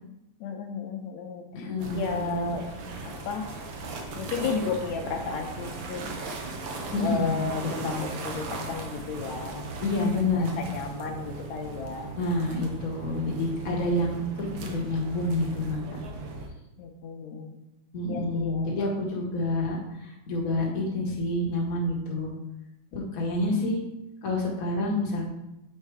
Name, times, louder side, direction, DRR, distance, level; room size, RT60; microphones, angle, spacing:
voice 1, 0.4-2.7 3.1-3.5 4.2-6.2 7.0-9.7 10.4-12.1 16.8-17.6 18.1-19.0 22.9-23.3, left 5 dB, 75° left, 3 dB, 1.9 m, -34 dB
voice 2, 1.5-2.5 6.9-7.5 7.8-8.0 9.8-10.5 12.2-16.0 17.9-22.3 22.9-23.8 24.2-25.2, left 2 dB, 45° left, -2 dB, 1.2 m, -28 dB
sound 1, 1.8-16.5, right 3 dB, 70° right, 1.1 m, -38 dB
7.4 x 4.4 x 4.7 m, 0.89 s
omnidirectional pair, 3.3 m